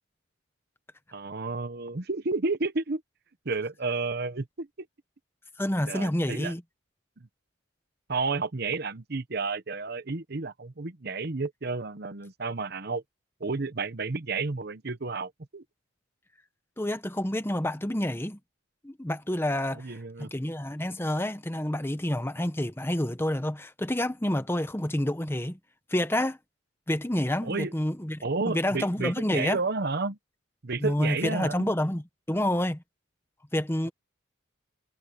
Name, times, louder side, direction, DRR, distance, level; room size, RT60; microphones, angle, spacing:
voice 1, 1.1-3.0 3.4-4.9 5.8-6.5 7.2-7.3 8.1-13.0 13.4-15.6 19.7-20.3 27.4-27.7 28.2-30.2 30.6-31.7, right 3 dB, 50° right, 0.9 m, -31 dB
voice 2, 5.6-6.6 16.8-18.4 18.8-25.6 25.9-26.4 26.9-29.6 30.8-32.8 33.5-33.9, left 1 dB, 10° left, 0.9 m, -28 dB
head